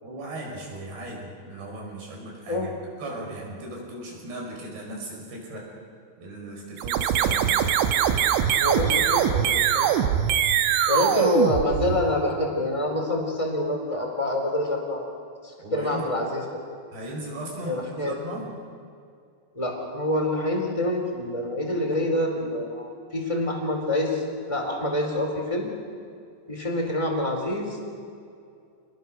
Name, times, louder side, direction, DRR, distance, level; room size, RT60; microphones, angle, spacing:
voice 1, 0.0-5.7 6.2-7.6 15.6-16.0 16.9-18.5, right 1 dB, 65° right, 0 dB, 7.1 m, -37 dB
sound 1, 6.8-12.3, right 9 dB, 90° right, 3.5 m, -22 dB
voice 2, 8.5-9.9 10.9-15.1 15.7-16.6 17.7-18.2 19.6-25.7 26.5-27.8, left 1 dB, 5° left, 0 dB, 3.7 m, -26 dB
28.5 x 20.5 x 6.5 m, 2.3 s
omnidirectional pair, 5.2 m